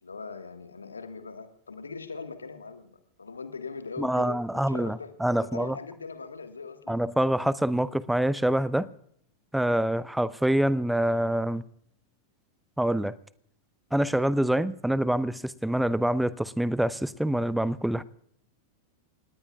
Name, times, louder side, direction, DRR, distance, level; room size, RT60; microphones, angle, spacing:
voice 1, 0.0-5.2 5.4-7.0 11.2-11.3, left 4 dB, 75° left, 1.5 m, -40 dB
voice 2, 4.0-5.8 6.9-8.9 9.5-11.6 12.8-13.1 13.9-18.0, right 1 dB, 5° right, 0.6 m, -26 dB
29.0 x 18.5 x 2.4 m
figure-of-eight pair, 90°, 0 cm